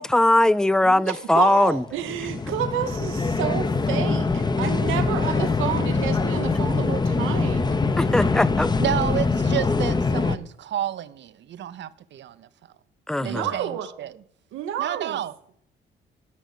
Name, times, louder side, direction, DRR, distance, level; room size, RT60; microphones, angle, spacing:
voice 1, 0.0-1.8 8.0-8.7 13.1-13.4, left 1 dB, 5° left, 0.4 m, -20 dB
voice 2, 0.8-7.8 13.2-13.9 14.5-15.2, right 10 dB, 90° right, 1.0 m, -30 dB
sound 1, 1.7-10.4, left 4 dB, 20° left, 0.8 m, -23 dB
voice 3, 8.8-12.5 13.2-14.1 14.8-15.3, right 11 dB, 65° right, 0.8 m, -30 dB
12.0 x 6.2 x 8.3 m
cardioid pair, 90°, 20 cm